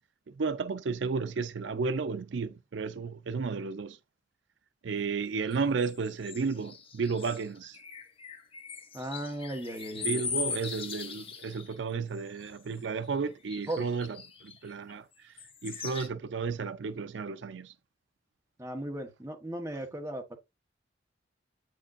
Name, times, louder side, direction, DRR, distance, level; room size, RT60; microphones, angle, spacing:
voice 1, 0.4-4.0 4.8-7.8 10.0-15.3 15.6-17.7, right 4 dB, 70° right, 0.5 m, -33 dB
sound 1, 5.5-11.7 12.1-12.8 13.5-14.9 15.4-16.1, left 5 dB, 30° left, 0.9 m, -40 dB
voice 2, 8.9-10.2 13.7-13.9 18.6-20.4, right 1 dB, 15° right, 1.1 m, -36 dB
8.1 x 6.3 x 2.5 m
head